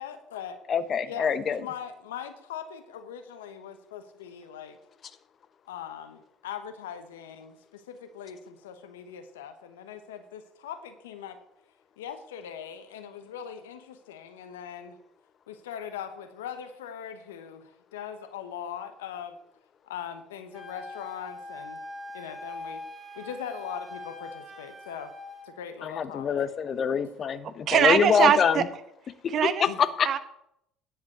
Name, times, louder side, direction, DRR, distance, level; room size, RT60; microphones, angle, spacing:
voice 1, 0.0-0.6 1.1-4.8 5.7-11.4 12.0-15.0 15.5-19.4 19.8-21.8 22.1-22.8 23.1-25.1 25.4-26.5 29.7-29.8, left 8 dB, 90° left, 9 dB, 1.1 m, -40 dB
voice 2, 0.7-1.6 25.8-28.6 29.6-30.1, left 7 dB, 45° left, 14 dB, 0.8 m, -25 dB
Wind instrument woodwind instrument, 20.5-25.5, left 2 dB, ahead, 2.6 m, -42 dB
voice 3, 27.7-28.6 29.3-29.6 30.0-30.2, right 8 dB, 55° right, 12 dB, 1.0 m, -22 dB
10.0 x 5.0 x 7.9 m, 0.75 s
hypercardioid pair, 70°, 0 cm